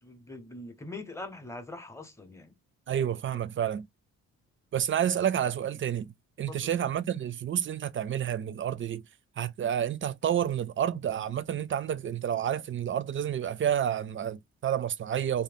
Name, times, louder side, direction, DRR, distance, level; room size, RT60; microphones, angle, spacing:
voice 1, 0.0-2.6 6.5-6.7, left 2 dB, 10° left, 0.8 m, -42 dB
voice 2, 2.9-3.9 4.7-6.1 6.4-9.0 9.4-15.4, right 9 dB, 40° right, 0.5 m, -29 dB
2.7 x 2.1 x 3.4 m
cardioid pair, 90°, 30 cm